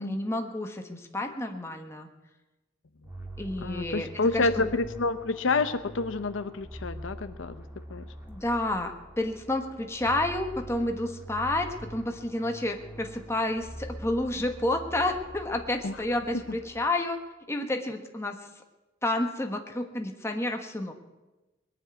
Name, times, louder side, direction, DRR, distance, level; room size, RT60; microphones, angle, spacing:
voice 1, 0.0-2.1 3.4-4.7 8.3-17.2 17.5-18.4 19.0-20.9, left 1 dB, 15° left, 4 dB, 1.3 m, -30 dB
sound 1, 3.0-17.2, right 1 dB, 10° right, 2.2 m, -44 dB
voice 2, 3.6-7.6 7.9-8.0 15.8-15.9, left 3 dB, 75° left, 10 dB, 0.8 m, -28 dB
20.5 x 7.3 x 9.3 m, 1.1 s
head